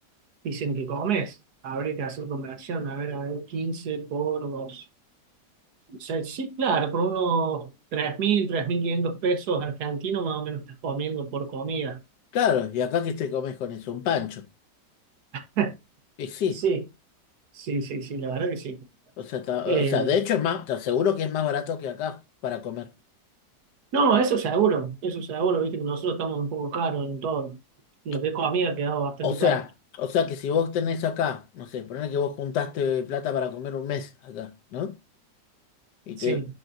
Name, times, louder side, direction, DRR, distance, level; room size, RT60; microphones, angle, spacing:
voice 1, 0.4-1.4 1.6-4.8 6.0-12.0 15.3-15.7 16.5-16.8 17.5-18.8 19.7-20.1 23.9-27.6 28.0-29.6 36.2-36.5, right 5 dB, 65° right, 1.4 m, -27 dB
voice 2, 12.3-14.4 16.2-16.6 19.2-22.2 22.4-22.9 29.2-29.7 30.0-34.9 36.1-36.4, left 8 dB, 75° left, 1.4 m, -27 dB
10.5 x 3.8 x 2.6 m
omnidirectional pair, 1.9 m